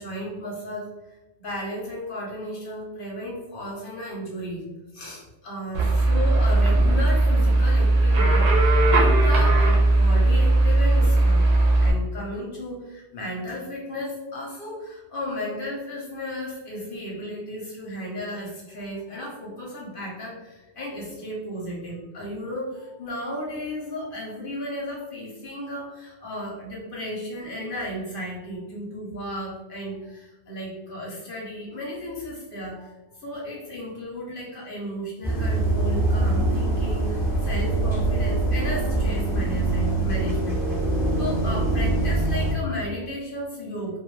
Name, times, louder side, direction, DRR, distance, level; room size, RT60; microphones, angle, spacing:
voice 1, 0.0-4.6 4.9-11.5 11.8-44.0, equal, 55° left, -3 dB, 0.6 m, -34 dB
sound 1, 5.7-11.9, right 2 dB, 60° right, 0.8 m, -18 dB
sound 2, 35.2-42.5, right 2 dB, 5° right, 0.6 m, -23 dB
2.3 x 2.2 x 3.1 m, 1.1 s
omnidirectional pair, 1.4 m